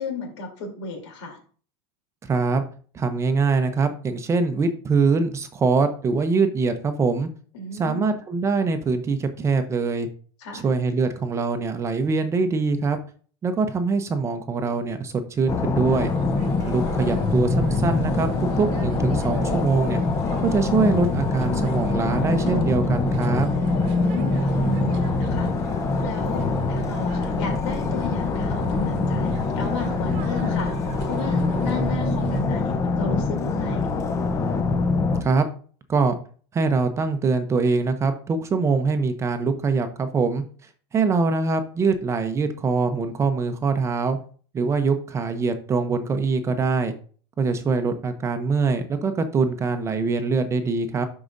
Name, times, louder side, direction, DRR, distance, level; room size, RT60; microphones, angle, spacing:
voice 1, 0.0-1.4 7.5-8.2 10.4-10.7 23.9-25.5 26.0-26.4 26.7-33.9, left 2 dB, 80° left, 2 dB, 3.2 m, -34 dB
voice 2, 2.3-2.6 2.9-7.3 7.8-10.1 10.5-13.0 13.4-16.1 16.6-18.3 18.6-20.0 20.4-23.5 35.2-35.5 35.9-36.2 36.5-40.4 40.9-44.2 44.5-46.9 47.4-51.0, right 4 dB, 20° right, 8 dB, 0.7 m, -23 dB
sound 1, 15.5-35.2, left 3 dB, 20° left, 0.7 m, -24 dB
sound 2, 15.8-32.4, right 8 dB, 50° right, 1.0 m, -38 dB
11.5 x 4.8 x 2.6 m, 0.43 s
supercardioid pair, 145°, 14 cm